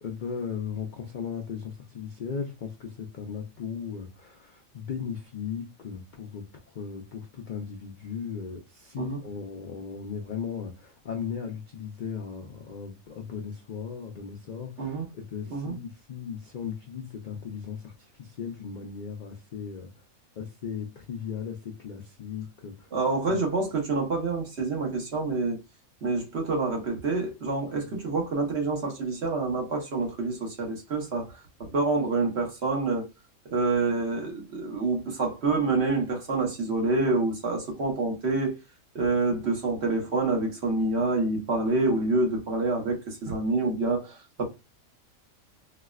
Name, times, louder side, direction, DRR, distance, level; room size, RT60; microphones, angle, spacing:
voice 1, 0.0-19.9 20.4-22.9 23.3-23.4 27.8-27.9, left 7 dB, 70° left, 0.4 m, -37 dB
voice 2, 22.9-25.6 26.0-31.3 31.6-33.1 33.5-38.5 38.9-44.4, right 3 dB, 50° right, 1.1 m, -27 dB
4.1 x 2.1 x 2.3 m
omnidirectional pair, 1.5 m